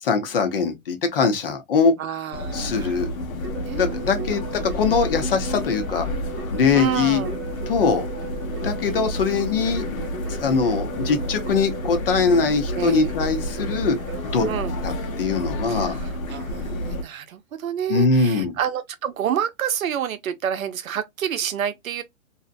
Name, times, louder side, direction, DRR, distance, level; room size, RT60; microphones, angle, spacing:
voice 1, 0.0-2.0 2.5-3.1 3.8-4.4 4.7-6.1 6.5-7.2 7.7-8.1 8.6-9.8 10.3-14.0 14.2-14.5 14.8-16.0 17.9-18.6, left 5 dB, 45° left, 0.6 m, -22 dB
voice 2, 2.0-3.1 3.6-4.4 6.7-7.4 12.7-13.1 14.5-14.8 15.6-22.0, right 9 dB, 75° right, 0.7 m, -29 dB
sound 1, 2.3-17.0, left 1 dB, 75° left, 1.0 m, -30 dB
Keyboard (musical), 3.4-15.9, right 5 dB, 20° right, 1.0 m, -38 dB
2.6 x 2.1 x 2.4 m
hypercardioid pair, 160°, 41 cm